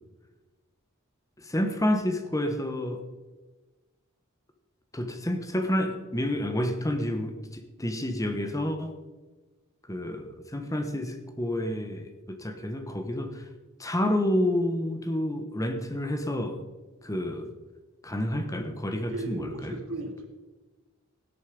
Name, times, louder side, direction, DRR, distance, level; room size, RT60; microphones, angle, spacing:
voice 1, 1.4-3.0 4.9-8.9 9.8-13.5 13.8-16.6 17.0-17.5 18.0-19.8, left 1 dB, 15° left, 7 dB, 1.2 m, -29 dB
voice 2, 19.1-20.3, right 2 dB, 70° right, 4 dB, 2.4 m, -36 dB
17.5 x 8.2 x 5.2 m, 1.2 s
head